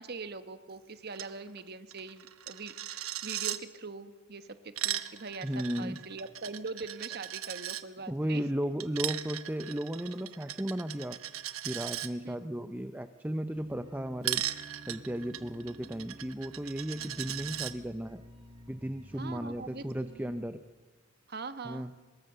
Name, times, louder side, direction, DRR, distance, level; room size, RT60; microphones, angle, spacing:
voice 1, 0.0-8.4 12.2-12.7 19.2-19.8 20.2-20.3 21.3-21.9, right 4 dB, 50° right, 10 dB, 1.2 m, -42 dB
Coin (dropping), 1.1-1.3 1.6-1.7 1.9-3.6 4.5-7.8 8.8-12.1 14.2-17.7, right 12 dB, 85° right, 1.0 m, -37 dB
voice 2, 5.4-6.0 8.1-11.2 11.6-14.4 14.9-18.2 18.7-20.6 21.6-21.9, equal, 10° right, 9 dB, 0.6 m, -35 dB
sound 1, 13.5-20.4, right 1 dB, 25° right, 2.3 m, -52 dB
24.0 x 21.0 x 6.8 m, 1.3 s
head